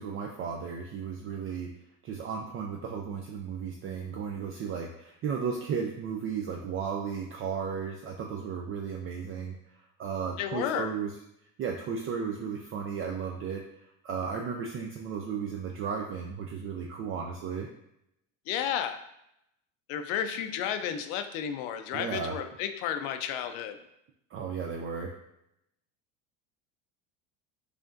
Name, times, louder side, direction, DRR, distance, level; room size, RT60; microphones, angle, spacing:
voice 1, 0.0-1.7 2.0-9.6 10.0-11.1 11.6-13.6 14.0-17.7 21.9-22.4 24.3-25.1, right 6 dB, 35° right, 1 dB, 0.4 m, -34 dB
voice 2, 10.4-10.9 18.5-19.0 19.9-23.8, left 9 dB, 80° left, 8 dB, 0.5 m, -32 dB
4.9 x 2.6 x 2.5 m, 0.81 s
supercardioid pair, 110°, 38 cm